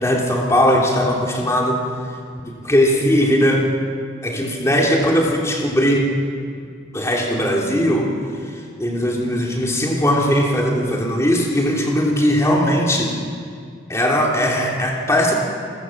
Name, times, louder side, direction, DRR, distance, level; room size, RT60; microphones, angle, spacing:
voice 1, 0.0-1.8 2.4-3.7 4.2-6.0 6.9-8.1 8.5-13.1 13.9-15.3, equal, 15° left, -1 dB, 3.2 m, -19 dB
28.5 x 14.5 x 7.4 m, 2.2 s
head